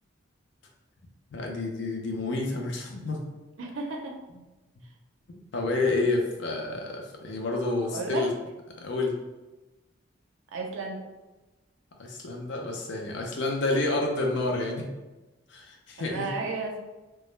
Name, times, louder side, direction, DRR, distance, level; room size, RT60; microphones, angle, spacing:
voice 1, 1.3-3.2 5.3-8.3 8.8-9.1 12.0-14.9 15.5-16.3, left 2 dB, 65° left, 1 dB, 0.5 m, -29 dB
voice 2, 3.6-4.2 7.9-8.3 10.5-11.0 16.0-16.8, right 3 dB, 85° right, 2 dB, 0.5 m, -33 dB
2.2 x 2.0 x 3.0 m, 1.1 s
head